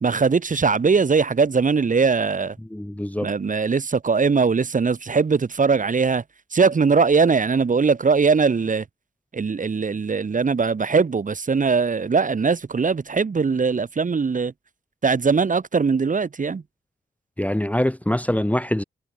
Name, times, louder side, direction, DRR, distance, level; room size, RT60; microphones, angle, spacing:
voice 1, 0.0-2.6 3.2-6.2 6.5-8.8 9.3-14.5 15.0-16.6, right 5 dB, 45° right, 1.1 m, -20 dB
voice 2, 2.7-3.3 17.4-18.8, left 1 dB, 5° left, 0.8 m, -24 dB
cardioid pair, 50°, 19 cm